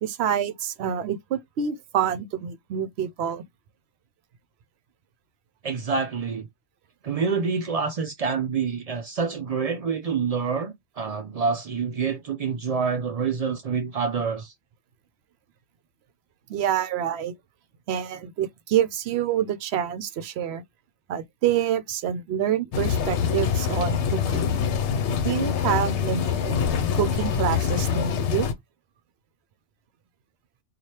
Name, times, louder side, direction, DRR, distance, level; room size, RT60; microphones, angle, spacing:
voice 1, 0.0-3.4 16.5-17.3 17.9-20.6 21.1-24.6 25.2-26.6 26.9-28.5, right 9 dB, 65° right, 0.8 m, -27 dB
voice 2, 5.6-6.5 7.0-14.5, right 5 dB, 85° right, 0.3 m, -27 dB
sound 1, 22.7-28.5, left 7 dB, 75° left, 0.9 m, -25 dB
3.1 x 2.4 x 4.2 m
omnidirectional pair, 1.2 m